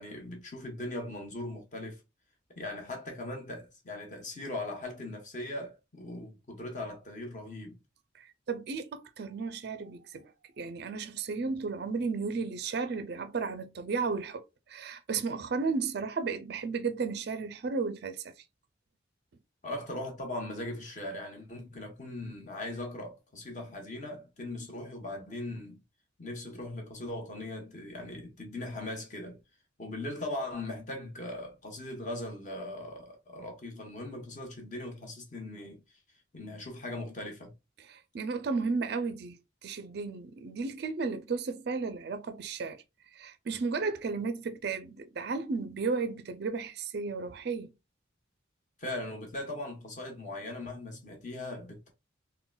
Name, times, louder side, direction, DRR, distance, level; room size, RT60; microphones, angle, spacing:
voice 1, 0.0-2.0 2.6-7.8 19.6-25.8 26.2-29.4 29.8-35.8 36.3-37.5 48.8-51.9, left 1 dB, 40° left, 0.9 m, -39 dB
voice 2, 8.1-18.3 37.8-42.8 43.1-47.7, right 4 dB, 55° right, 0.4 m, -34 dB
3.7 x 2.1 x 2.2 m
head